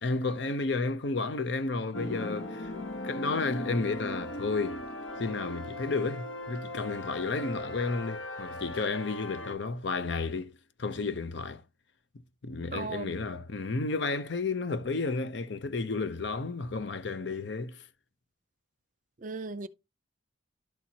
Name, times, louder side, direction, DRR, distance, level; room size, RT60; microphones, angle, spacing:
voice 1, 0.0-2.7 3.0-4.8 5.2-10.5 10.8-11.6 12.4-17.8, left 3 dB, 65° left, 0.6 m, -32 dB
sound 1, 1.9-9.5, left 1 dB, 90° left, 1.2 m, -38 dB
voice 2, 12.7-13.1 19.2-19.7, right 4 dB, 40° right, 0.5 m, -36 dB
12.0 x 4.3 x 2.8 m
head